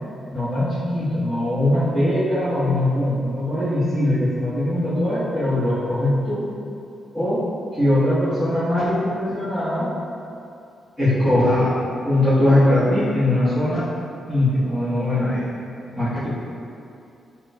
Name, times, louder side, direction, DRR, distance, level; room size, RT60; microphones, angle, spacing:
voice 1, 0.3-6.4 7.1-7.4 7.7-9.9 11.0-11.7 12.0-13.8 14.3-15.5 15.9-16.4, left 1 dB, 15° left, -18 dB, 1.4 m, -21 dB
5.2 x 3.0 x 2.2 m, 2.6 s
cardioid pair, 135°, 0 cm